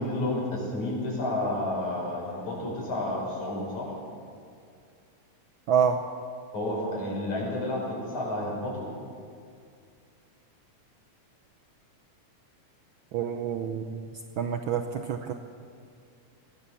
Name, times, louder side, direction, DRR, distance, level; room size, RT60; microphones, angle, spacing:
voice 1, 0.0-3.9 6.5-8.9, left 1 dB, 85° left, -3 dB, 7.7 m, -31 dB
voice 2, 5.7-6.0 13.1-14.0 14.4-15.3, right 7 dB, 80° right, 6 dB, 1.1 m, -27 dB
22.0 x 17.5 x 7.1 m, 2.3 s
omnidirectional pair, 3.3 m